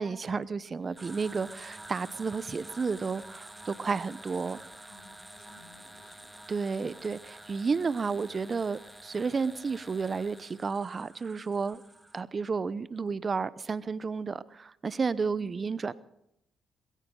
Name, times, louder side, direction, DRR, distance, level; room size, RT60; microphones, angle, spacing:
voice 1, 0.0-4.9 6.5-11.8 12.1-15.9, right 5 dB, 40° right, 17 dB, 0.8 m, -32 dB
sound 1, 0.8-10.7, equal, 5° left, 1.2 m, -53 dB
sound 2, 1.0-12.2, right 2 dB, 20° right, 1.7 m, -51 dB
voice 2, 4.9-6.3 15.4-15.7, equal, 80° left, 4 dB, 6.7 m, -56 dB
21.5 x 15.0 x 3.9 m, 0.81 s
hypercardioid pair, 50°, 0 cm